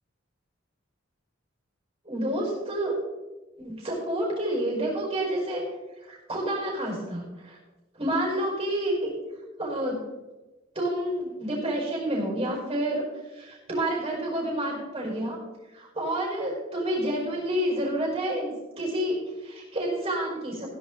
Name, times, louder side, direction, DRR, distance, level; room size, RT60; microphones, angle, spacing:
voice 1, 2.1-2.9 3.6-5.6 6.1-7.6 7.9-9.1 9.6-10.0 10.8-15.4 15.7-20.7, right 1 dB, 30° right, -2 dB, 5.4 m, -29 dB
16.5 x 11.0 x 3.9 m, 1.1 s
head